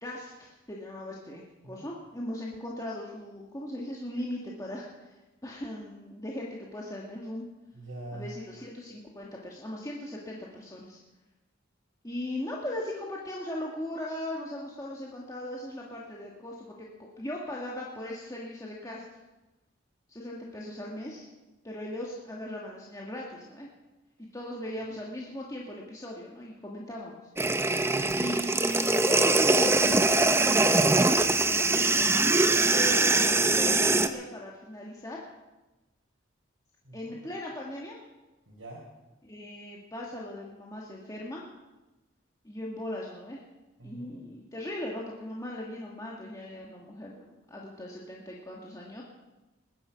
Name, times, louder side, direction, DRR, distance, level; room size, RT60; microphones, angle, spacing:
voice 1, 0.0-5.1 5.4-7.5 8.1-11.0 12.0-16.9 17.2-19.0 20.1-21.3 21.6-23.7 24.3-27.2 28.2-31.8 32.7-35.2 36.9-38.0 39.2-41.4 42.4-43.4 43.8-49.0, left 1 dB, 15° left, -3 dB, 1.7 m, -38 dB
voice 2, 7.7-8.3 36.8-37.2 38.5-38.8 43.8-44.1, right 2 dB, 85° right, -5 dB, 4.5 m, -43 dB
sound 1, 27.4-34.1, right 2 dB, 10° right, 0.6 m, -23 dB
21.0 x 10.0 x 5.8 m, 1.1 s
head